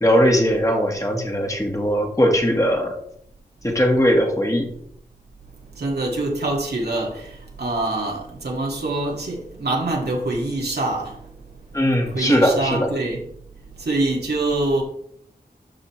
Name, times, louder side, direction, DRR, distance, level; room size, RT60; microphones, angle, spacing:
voice 1, 0.0-2.9 3.6-4.7 11.7-12.9, equal, 20° left, 1.7 m, -19 dB
voice 2, 5.8-11.2 12.1-13.2 13.8-14.8, right 2 dB, 85° right, 2.2 m, -25 dB
12.5 x 5.4 x 3.2 m
wide cardioid pair, 70°, 16 cm